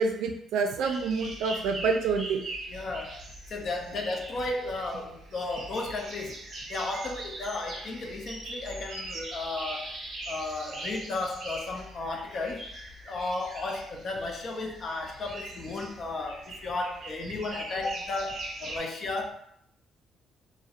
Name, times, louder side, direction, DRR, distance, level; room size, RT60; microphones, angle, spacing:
voice 1, 0.0-2.4, right 4 dB, 90° right, 4 dB, 0.3 m, -27 dB
sound 1, 0.8-18.8, right 1 dB, 60° right, 0.7 m, -41 dB
voice 2, 2.7-3.2 3.5-6.4 6.7-9.9 10.3-12.7 13.1-19.4, left 2 dB, 50° left, 3 dB, 0.4 m, -34 dB
2.4 x 2.0 x 2.7 m, 0.72 s
cardioid pair, 125°, 0 cm